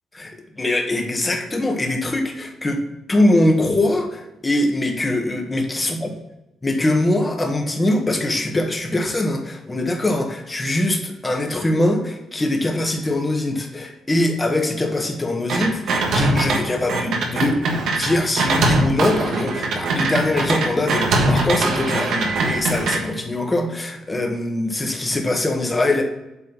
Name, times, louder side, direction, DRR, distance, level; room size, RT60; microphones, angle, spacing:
voice 1, 0.6-2.8 3.1-6.1 6.6-17.6 17.9-26.0, left 1 dB, 20° left, 2 dB, 1.6 m, -22 dB
sound 1, 15.5-16.6 16.9-23.0, right 2 dB, 75° right, 1.4 m, -21 dB
8.6 x 3.8 x 5.3 m, 0.93 s
cardioid pair, 90°, 0 cm